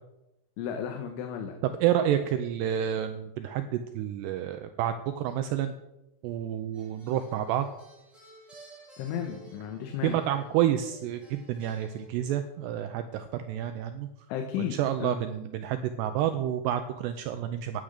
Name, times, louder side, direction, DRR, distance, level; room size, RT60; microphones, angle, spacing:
voice 1, 0.6-1.6 9.0-10.2 14.3-15.2, left 8 dB, 80° left, 4 dB, 3.5 m, -34 dB
voice 2, 1.8-5.7 6.2-7.7 10.0-14.1 14.6-17.8, right 10 dB, 90° right, 9 dB, 2.4 m, -29 dB
sound 1, 6.7-12.8 14.8-15.0, right 3 dB, ahead, 5.6 m, -54 dB
12.5 x 9.4 x 6.6 m, 0.92 s
omnidirectional pair, 5.6 m